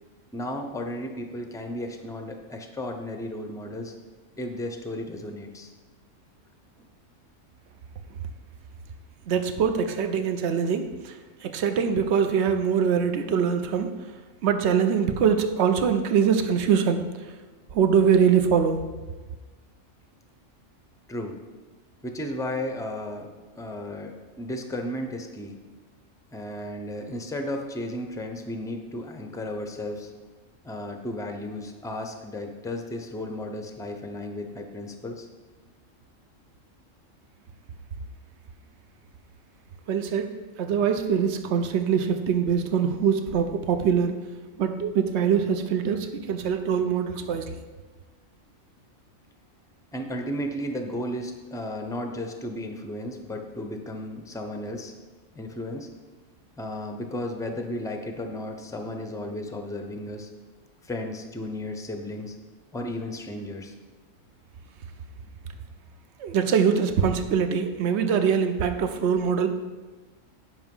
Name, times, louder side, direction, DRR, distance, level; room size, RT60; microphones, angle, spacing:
voice 1, 0.3-3.9 4.4-5.7 21.1-21.4 22.0-23.3 23.6-25.6 26.3-30.1 30.6-35.3 49.9-54.9 55.3-55.9 56.6-60.3 60.8-62.3 62.7-63.7, left 1 dB, 5° left, 4 dB, 0.6 m, -34 dB
voice 2, 9.3-11.2 11.4-14.0 14.4-17.0 17.7-18.8 39.9-44.2 44.6-47.5 66.2-69.5, right 7 dB, 60° right, 8 dB, 1.0 m, -23 dB
10.5 x 5.8 x 5.4 m, 1.3 s
omnidirectional pair, 1.3 m